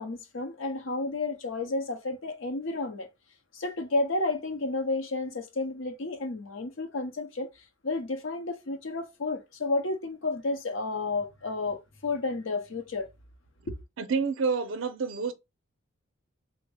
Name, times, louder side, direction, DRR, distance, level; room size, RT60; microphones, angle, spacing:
voice 1, 0.0-3.1 3.5-7.5 7.8-13.1 13.7-13.8, left 3 dB, 65° left, 0.7 m, -31 dB
voice 2, 14.0-15.3, right 5 dB, 65° right, 0.5 m, -28 dB
3.5 x 2.1 x 3.2 m
head